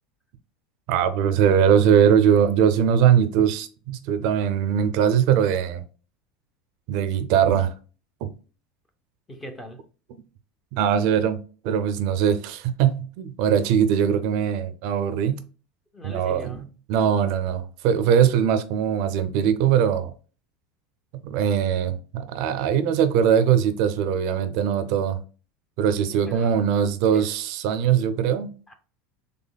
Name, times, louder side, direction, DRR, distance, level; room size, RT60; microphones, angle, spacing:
voice 1, 0.9-5.8 6.9-7.7 8.2-8.3 10.7-11.4 11.6-15.4 16.0-20.1 21.1-25.2 25.8-28.5, right 8 dB, 45° right, 0.4 m, -21 dB
voice 2, 9.3-9.8 15.9-16.6 26.1-26.7 27.1-27.3 28.7-28.8, equal, 10° left, 0.5 m, -40 dB
4.0 x 3.3 x 2.2 m
supercardioid pair, 180°, 0 cm